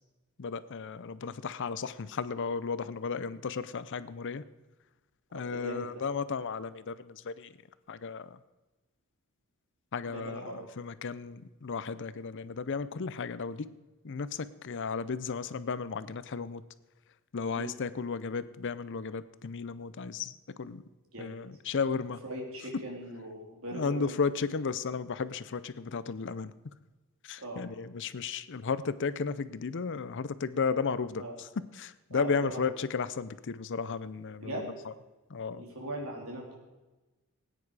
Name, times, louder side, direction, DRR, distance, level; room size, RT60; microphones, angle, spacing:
voice 1, 0.4-4.4 5.3-7.5 7.9-8.4 9.9-13.7 14.0-16.6 17.3-20.3 20.6-20.8 21.2-22.2 23.7-26.5 27.2-31.5 31.7-34.5 35.3-35.6, left 5 dB, 55° left, 15 dB, 0.6 m, -34 dB
voice 2, 5.3-6.0 10.0-10.6 17.5-17.7 21.1-21.4 22.3-24.1 27.4-27.6 31.2-31.3 32.1-32.7 34.4-34.7 35.5-36.6, right 1 dB, 65° right, -1 dB, 3.5 m, -40 dB
18.5 x 9.5 x 4.8 m, 1.1 s
head